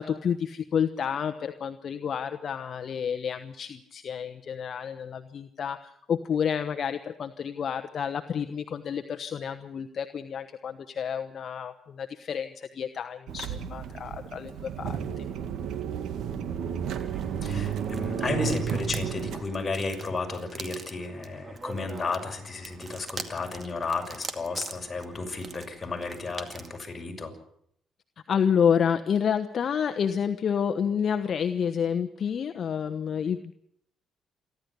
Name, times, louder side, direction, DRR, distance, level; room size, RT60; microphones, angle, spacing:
voice 1, 0.0-15.3 28.3-33.5, left 7 dB, 55° left, 8 dB, 1.1 m, -29 dB
sound 1, 13.3-19.4, right 8 dB, 80° right, 2.0 m, -32 dB
sound 2, 16.9-26.8, right 4 dB, 35° right, 2.2 m, -44 dB
voice 2, 17.4-27.3, left 3 dB, 30° left, 2 dB, 6.3 m, -33 dB
28.0 x 12.0 x 8.2 m, 0.72 s
cardioid pair, 90°, 0 cm